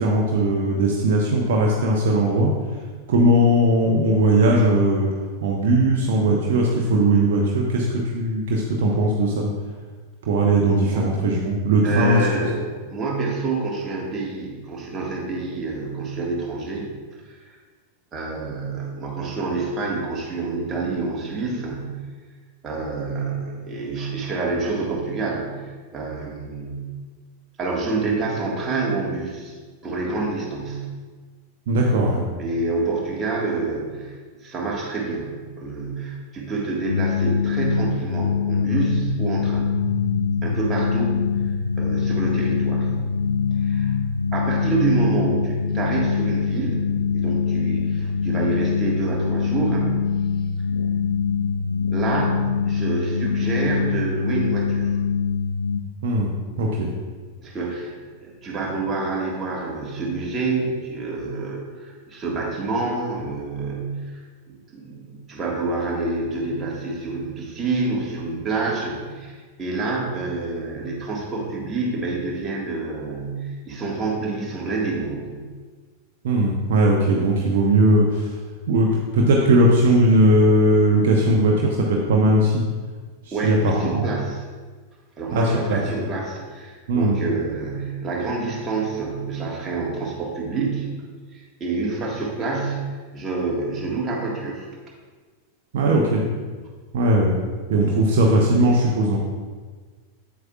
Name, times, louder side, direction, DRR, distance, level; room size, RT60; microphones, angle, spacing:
voice 1, 0.0-2.5 3.1-5.1 5.4-9.5 10.2-12.2 31.7-32.2 56.0-56.3 56.6-56.9 76.2-78.3 78.7-82.6 83.4-84.1 85.3-86.0 86.9-87.2 95.7-96.3 96.9-97.3 97.7-99.2, right 1 dB, 55° right, -1 dB, 0.8 m, -19 dB
voice 2, 11.8-16.9 17.2-17.6 18.1-22.0 22.6-26.9 27.6-30.9 32.4-39.7 40.4-41.2 41.4-43.0 43.5-43.9 44.3-50.1 51.9-55.0 57.4-64.2 64.5-75.3 83.3-84.4 85.2-90.9 91.3-94.7, right 3 dB, 20° right, -3 dB, 1.7 m, -27 dB
sound 1, 36.9-55.8, left 6 dB, 70° left, 0.4 m, -23 dB
8.5 x 7.8 x 2.4 m, 1.4 s
figure-of-eight pair, 90°, 0 cm